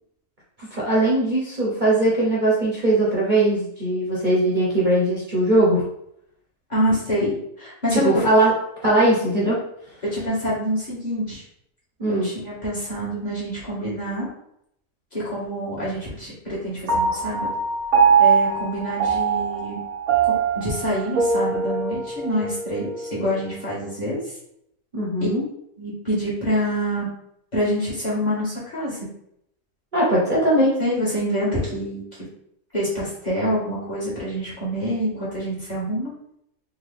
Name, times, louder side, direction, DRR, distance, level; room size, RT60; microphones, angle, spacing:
voice 1, 0.7-5.8 7.9-8.5 8.8-9.6 12.0-12.3 24.9-25.4 29.9-30.7, right 1 dB, 35° right, -6 dB, 1.1 m, -20 dB
voice 2, 6.7-8.2 10.1-11.4 12.1-14.3 15.1-17.5 18.2-19.8 20.5-24.2 25.8-27.1 27.5-29.0 30.8-32.0 32.7-36.1, equal, 30° left, -8 dB, 1.9 m, -26 dB
Piano, 16.9-23.6, right 5 dB, 75° right, 1.3 m, -22 dB
3.8 x 3.2 x 3.5 m, 0.75 s
omnidirectional pair, 1.5 m